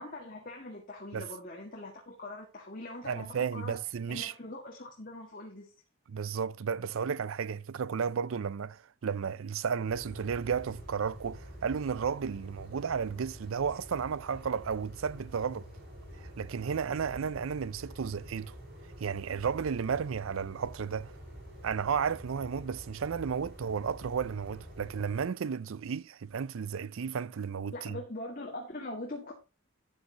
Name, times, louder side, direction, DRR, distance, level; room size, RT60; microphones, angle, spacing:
voice 1, 0.0-3.8 4.1-5.7 27.7-29.3, left 2 dB, 40° left, 1.9 m, -42 dB
voice 2, 3.0-4.3 6.1-15.7 16.2-18.6 19.0-21.1 21.6-28.0, right 6 dB, 75° right, 0.4 m, -33 dB
sound 1, 9.9-25.2, equal, 50° right, 6.1 m, -48 dB
13.0 x 8.8 x 2.9 m
head